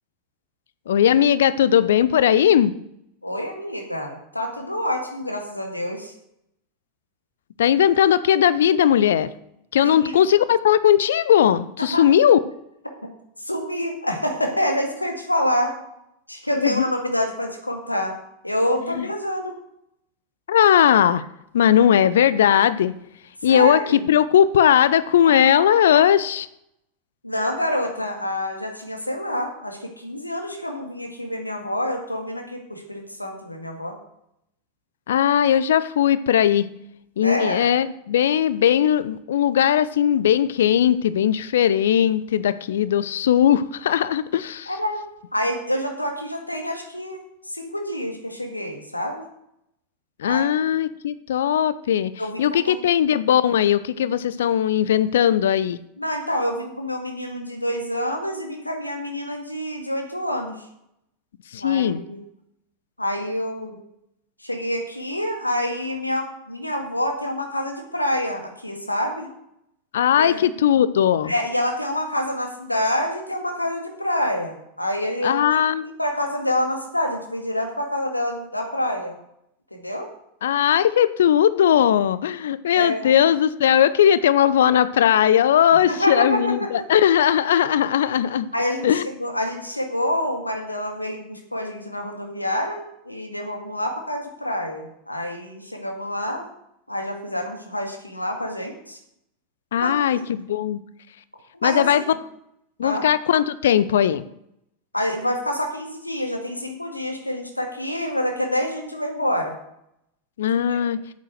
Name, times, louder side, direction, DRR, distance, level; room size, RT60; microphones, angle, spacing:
voice 1, 0.9-2.7 7.6-9.3 9.7-12.4 16.6-16.9 19.0-19.1 20.5-21.2 21.5-22.9 23.4-26.5 35.1-36.7 37.2-44.7 50.2-52.1 52.4-55.8 61.5-62.0 69.9-71.3 75.2-75.9 80.4-88.5 88.8-89.1 99.7-100.8 101.6-102.0 102.8-104.2 110.4-111.0, left 10 dB, 65° left, 15 dB, 0.5 m, -18 dB
voice 2, 3.2-6.1 9.8-10.1 11.9-12.0 13.4-15.7 16.3-18.2 18.4-19.5 23.4-24.0 27.2-34.0 37.2-37.6 44.7-45.0 45.3-47.2 47.5-49.2 50.2-50.7 52.2-52.8 56.0-60.6 61.6-62.2 63.0-63.8 64.4-69.3 70.2-70.4 71.3-75.6 76.0-79.2 79.7-80.1 82.7-83.1 85.8-86.7 88.5-96.5 96.9-99.0 99.8-100.2 101.5-102.1 102.8-103.1 104.9-109.6 110.7-110.8, left 1 dB, 85° left, 3 dB, 2.0 m, -27 dB
8.6 x 8.3 x 6.7 m, 0.79 s
figure-of-eight pair, 85°, 0 cm